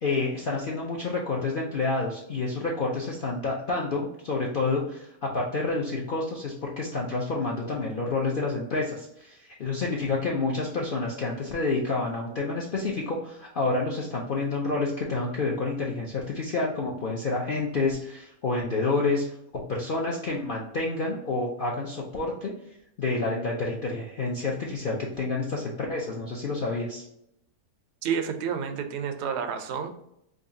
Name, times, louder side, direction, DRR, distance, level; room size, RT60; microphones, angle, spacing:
voice 1, 0.0-19.3 19.5-22.5 23.0-27.0, left 3 dB, 70° left, -2 dB, 0.5 m, -29 dB
voice 2, 28.0-29.9, right 7 dB, 70° right, 7 dB, 0.6 m, -30 dB
5.0 x 2.3 x 2.6 m, 0.77 s
omnidirectional pair, 1.6 m